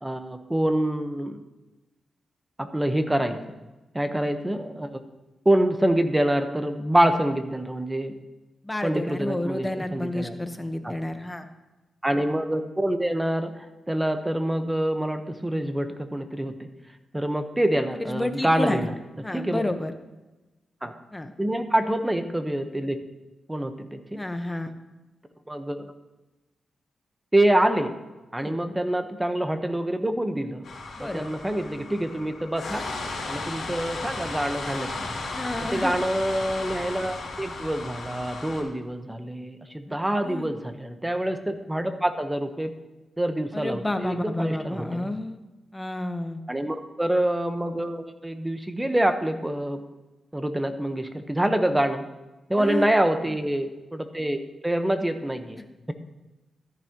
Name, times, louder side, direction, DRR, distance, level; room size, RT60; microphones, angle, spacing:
voice 1, 0.0-1.4 2.6-3.4 3.9-5.0 5.4-8.1 8.8-10.4 10.8-10.9 12.0-16.7 17.1-18.9 19.3-19.6 20.8-21.0 21.4-23.0 23.5-24.2 25.5-25.9 27.3-27.9 28.3-30.6 31.0-32.8 33.3-35.1 35.7-42.7 43.2-45.1 46.5-49.8 50.3-52.0 52.5-55.6, right 1 dB, 15° right, 8 dB, 1.1 m, -26 dB
voice 2, 8.6-11.5 18.0-18.8 19.2-19.9 21.1-21.3 24.2-24.7 28.4-28.6 31.0-31.2 35.3-36.0 39.9-40.0 40.2-40.5 43.5-45.4 45.7-46.4 51.7-51.8 52.5-52.9 55.6-55.7, left 1 dB, 15° left, 7 dB, 1.1 m, -30 dB
sound 1, 30.6-38.6, left 3 dB, 70° left, 2.7 m, -35 dB
13.5 x 10.5 x 3.0 m, 1.1 s
cardioid pair, 60°, 0 cm